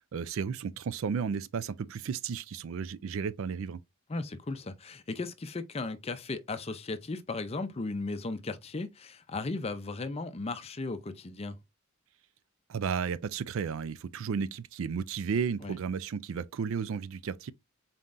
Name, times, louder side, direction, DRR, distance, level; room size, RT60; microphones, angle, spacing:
voice 1, 0.1-3.8 12.7-17.5, right 6 dB, 65° right, 0.4 m, -33 dB
voice 2, 4.1-11.6 15.6-15.7, left 3 dB, 30° left, 0.5 m, -36 dB
4.2 x 3.7 x 2.5 m
head